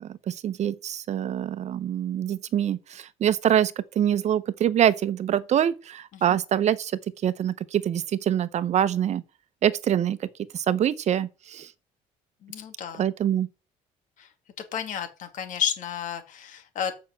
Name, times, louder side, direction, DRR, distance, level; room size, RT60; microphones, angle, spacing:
voice 1, 0.0-6.9 7.2-9.2 9.6-10.3 10.5-11.7 13.0-13.5, right 10 dB, 55° right, 1.0 m, -25 dB
voice 2, 12.4-13.0 14.2-14.3 14.7-16.9, left 8 dB, 70° left, 2.6 m, -32 dB
7.2 x 5.9 x 7.4 m
cardioid pair, 95°, 14 cm